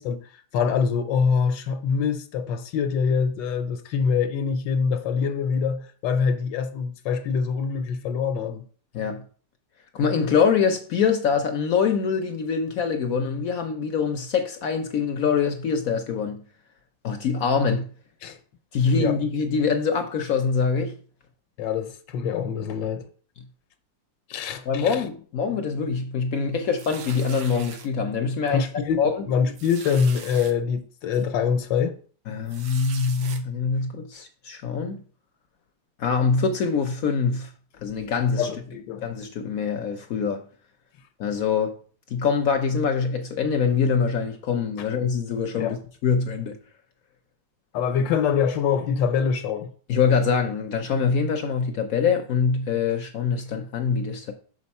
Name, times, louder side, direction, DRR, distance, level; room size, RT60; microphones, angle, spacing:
voice 1, 0.0-8.7 18.2-18.4 18.9-19.1 21.6-23.1 24.3-25.0 28.5-31.9 38.4-39.0 44.8-44.9 45.5-45.8 47.7-49.7, left 6 dB, 80° left, 1.4 m, -25 dB
voice 2, 9.9-16.4 17.0-17.9 18.7-21.0 24.7-29.3 32.3-35.0 36.0-37.5 37.8-38.5 39.0-40.4 41.2-41.8 42.1-45.8 46.0-46.6 49.9-54.3, left 5 dB, 65° left, 1.0 m, -24 dB
sound 1, 26.8-27.9 28.5-28.6 28.9-29.0 29.6-30.5 31.1-31.2 32.5-33.4, right 7 dB, 85° right, 1.6 m, -41 dB
6.3 x 5.3 x 4.2 m
omnidirectional pair, 2.0 m